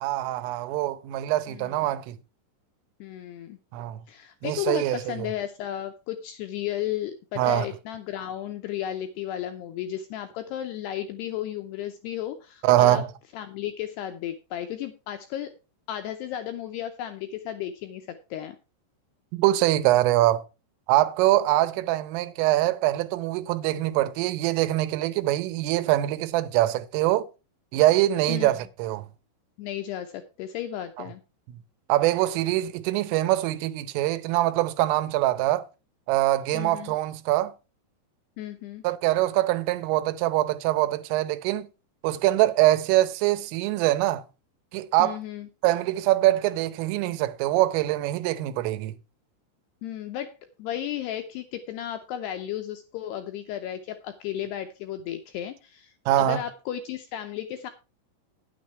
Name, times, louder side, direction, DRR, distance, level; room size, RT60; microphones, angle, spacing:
voice 1, 0.0-2.2 3.7-4.0 4.4-5.3 7.4-7.7 12.6-13.1 19.3-20.4 20.9-27.3 27.7-29.1 31.9-35.7 36.1-37.5 38.8-41.7 42.0-44.2 44.7-45.2 45.6-48.9 56.1-56.4, right 15 dB, 90° right, 3.5 m, -23 dB
voice 2, 1.5-1.9 3.0-3.6 4.1-13.0 13.3-15.5 15.9-18.6 28.3-28.5 29.6-31.2 36.5-37.0 38.4-38.8 45.0-45.5 49.8-50.3 50.6-57.7, left 11 dB, 80° left, 2.4 m, -34 dB
10.5 x 9.2 x 4.5 m
omnidirectional pair, 5.7 m